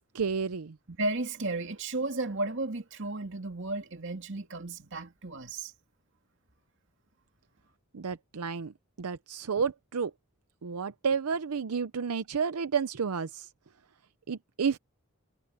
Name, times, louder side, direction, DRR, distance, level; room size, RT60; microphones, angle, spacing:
voice 1, 0.1-0.8 7.9-8.7 9.0-10.1 10.6-13.5 14.3-14.8, right 6 dB, 85° right, 0.6 m, -31 dB
voice 2, 0.9-5.7, right 2 dB, 55° right, 2.5 m, -34 dB
head